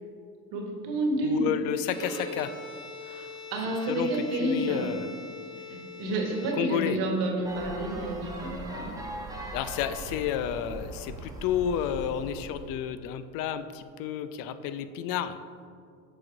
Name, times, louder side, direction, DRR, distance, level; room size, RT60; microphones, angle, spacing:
voice 1, 0.5-1.5 3.0-4.9 5.7-8.9, right 2 dB, 60° right, 1 dB, 1.3 m, -30 dB
voice 2, 1.2-2.5 3.9-5.1 6.6-7.0 9.5-15.4, left 9 dB, 55° left, 12 dB, 0.5 m, -31 dB
Bowed string instrument, 1.8-7.1, left 2 dB, 10° left, 1.5 m, -42 dB
sound 1, 7.4-12.8, right 1 dB, 10° right, 1.1 m, -40 dB
7.4 x 4.0 x 3.8 m, 2.3 s
hypercardioid pair, 65°, 43 cm